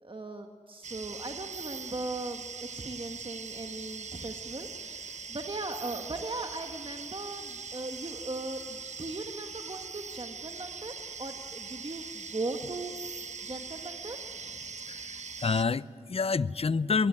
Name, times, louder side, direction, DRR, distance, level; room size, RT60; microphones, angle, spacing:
voice 1, 0.0-12.9 13.4-14.6, right 2 dB, 40° right, 4 dB, 1.5 m, -39 dB
sound 1, 0.8-15.6, right 5 dB, 65° right, 0.8 m, -41 dB
voice 2, 14.9-17.1, left 4 dB, 50° left, 18 dB, 0.6 m, -28 dB
20.0 x 20.0 x 9.6 m, 2.1 s
cardioid pair, 40°, 13 cm